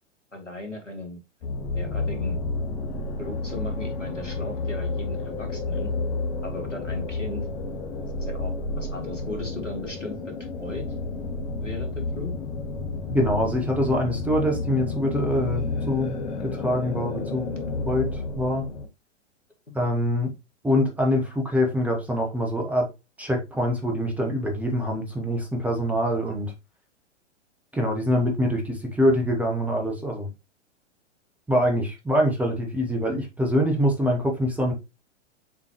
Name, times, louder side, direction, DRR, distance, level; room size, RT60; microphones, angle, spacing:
voice 1, 0.3-2.4 3.2-5.9 6.4-7.5 8.1-10.2 10.6-10.8 11.6-12.3, left 2 dB, 85° left, 2.4 m, -37 dB
sound 1, 1.4-18.9, left 3 dB, 40° left, 1.7 m, -31 dB
voice 2, 13.1-17.5 17.8-18.7 19.7-20.3 20.6-22.9 23.2-26.5 27.7-30.3 31.5-34.7, equal, 5° right, 1.3 m, -24 dB
7.1 x 4.4 x 3.0 m
figure-of-eight pair, 105°, 36 cm